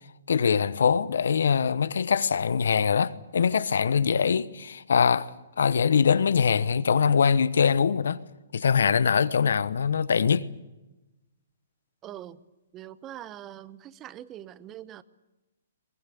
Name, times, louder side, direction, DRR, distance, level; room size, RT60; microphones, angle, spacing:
voice 1, 0.3-5.3 5.6-8.2 8.5-10.5, left 6 dB, 70° left, 1.0 m, -23 dB
voice 2, 12.0-12.4 12.7-15.0, right 12 dB, 25° right, 1.0 m, -43 dB
22.0 x 21.5 x 8.5 m
hypercardioid pair, 130°, 0 cm